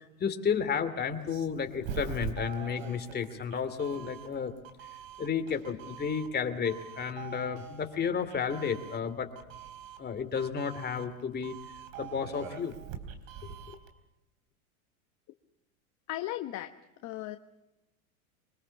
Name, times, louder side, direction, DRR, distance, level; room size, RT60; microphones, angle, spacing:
voice 1, 0.0-4.5 5.2-9.3 10.0-11.6 12.0-12.7 13.7-13.8, left 6 dB, 25° left, 7 dB, 2.6 m, -32 dB
Doorbell, 1.1-13.9, right 8 dB, 65° right, 3.4 m, -44 dB
voice 2, 16.1-16.8 17.0-17.4, left 15 dB, 40° left, 8 dB, 1.1 m, -36 dB
24.5 x 21.0 x 7.2 m, 0.97 s
hypercardioid pair, 105°, 42 cm